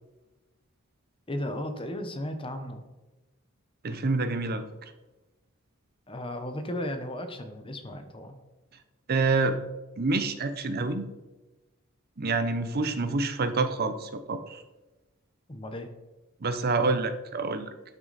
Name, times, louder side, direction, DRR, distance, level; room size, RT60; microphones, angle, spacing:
voice 1, 1.3-2.8 6.1-8.3 15.5-15.9, left 1 dB, 25° left, 7 dB, 1.0 m, -35 dB
voice 2, 3.8-4.9 9.1-9.6 10.0-11.1 12.2-14.6 16.4-17.7, right 3 dB, 45° right, 10 dB, 0.7 m, -27 dB
12.0 x 6.3 x 4.2 m, 1.1 s
head